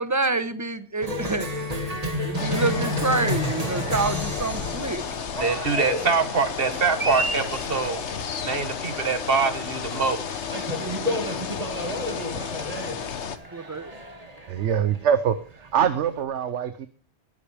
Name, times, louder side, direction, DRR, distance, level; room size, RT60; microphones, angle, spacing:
voice 1, 0.0-1.8 2.2-5.0 13.5-13.9, right 3 dB, 15° right, 11 dB, 1.0 m, -27 dB
Cheering, 1.0-16.2, equal, 35° right, 2.0 m, -32 dB
sound 1, 2.3-13.4, left 7 dB, 75° left, 1.3 m, -32 dB
voice 2, 5.4-8.0 8.4-10.3, right 5 dB, 55° right, 9 dB, 1.5 m, -24 dB
voice 3, 14.5-16.9, right 8 dB, 85° right, 11 dB, 1.1 m, -24 dB
20.5 x 10.0 x 3.4 m, 0.39 s
omnidirectional pair, 1.2 m